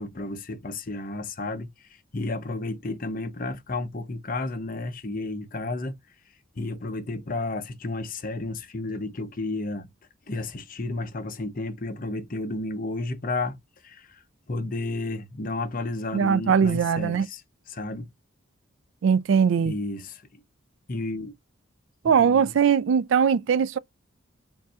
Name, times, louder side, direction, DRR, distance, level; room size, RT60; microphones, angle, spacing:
voice 1, 0.0-1.7 2.1-6.0 6.6-9.9 10.3-13.6 13.8-14.2 14.5-17.4 17.7-18.1 19.6-20.2 20.9-21.3 22.2-22.5, left 2 dB, 40° left, 0.7 m, -32 dB
voice 2, 16.1-17.3 19.0-19.7 22.0-23.8, right 7 dB, 65° right, 0.3 m, -21 dB
7.1 x 2.6 x 2.3 m
head